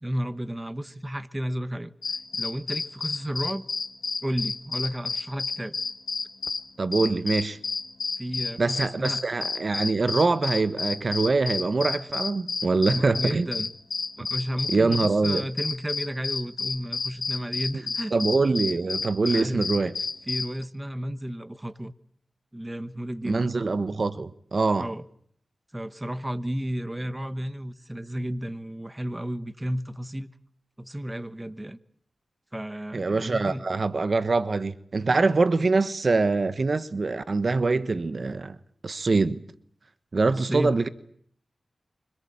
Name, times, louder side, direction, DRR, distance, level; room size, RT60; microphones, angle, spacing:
voice 1, 0.0-1.9 2.3-3.7 4.2-5.8 8.2-9.2 12.9-13.7 14.2-18.2 19.3-19.6 20.3-21.9 22.5-23.5 24.8-25.0 25.7-30.3 30.8-31.8 32.5-33.6 40.4-40.8, equal, 15° right, 1.1 m, -32 dB
sound 1, 2.0-6.7 6.9-20.6, left 4 dB, 70° left, 1.7 m, -31 dB
voice 2, 6.8-7.6 8.6-13.5 14.7-15.4 18.1-19.9 23.2-24.9 32.9-38.6 38.8-39.4 40.1-40.9, right 3 dB, 50° right, 1.2 m, -24 dB
25.5 x 19.0 x 8.8 m
wide cardioid pair, 70°, 0 cm